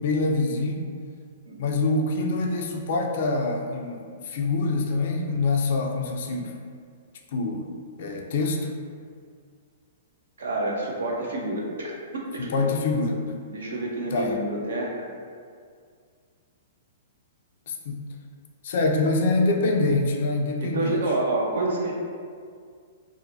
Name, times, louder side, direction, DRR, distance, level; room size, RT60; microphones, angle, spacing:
voice 1, 0.0-0.8 1.6-6.6 7.3-7.7 8.0-8.7 12.4-13.4 14.1-14.4 17.7-18.0 18.6-21.0, left 3 dB, 60° left, 2 dB, 0.3 m, -25 dB
voice 2, 10.4-11.9 12.3-12.5 13.5-15.1 20.6-21.9, right 2 dB, 70° right, -1 dB, 0.5 m, -28 dB
2.7 x 2.1 x 2.6 m, 2.1 s
hypercardioid pair, 115°, 0 cm